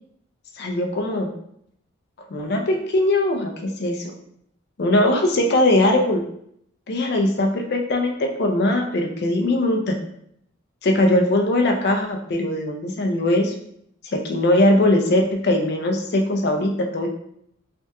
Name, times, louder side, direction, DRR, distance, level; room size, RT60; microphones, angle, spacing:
voice 1, 0.6-1.3 2.3-3.5 3.8-4.1 4.8-6.2 6.9-10.0 10.8-13.5 14.1-17.1, left 1 dB, 55° left, 3 dB, 0.5 m, -20 dB
3.3 x 2.2 x 2.8 m, 0.70 s
head